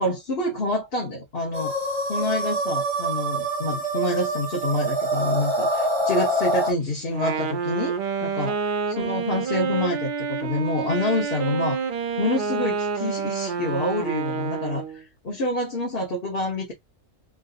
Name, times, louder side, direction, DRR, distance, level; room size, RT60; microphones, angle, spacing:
voice 1, 0.0-1.7 2.1-8.6 9.0-11.8 12.2-16.7, left 1 dB, 45° left, 1.2 m, -27 dB
sound 1, 1.5-6.7, right 1 dB, 20° right, 1.1 m, -25 dB
Wind instrument woodwind instrument, 7.0-15.0, right 6 dB, 60° right, 0.5 m, -28 dB
3.8 x 2.6 x 2.4 m
omnidirectional pair, 1.5 m